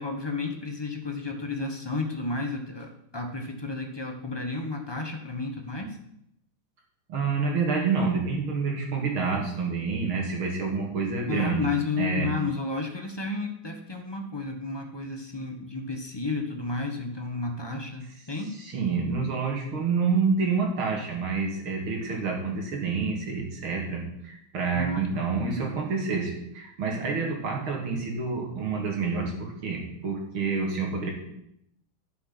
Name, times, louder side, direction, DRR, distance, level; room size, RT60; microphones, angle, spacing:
voice 1, 0.0-5.9 11.3-18.5 24.7-25.7, left 3 dB, 20° left, 2 dB, 0.6 m, -32 dB
voice 2, 7.1-11.7 12.0-12.3 18.6-31.1, right 4 dB, 85° right, 0 dB, 2.9 m, -28 dB
10.5 x 5.9 x 5.9 m, 0.77 s
omnidirectional pair, 2.3 m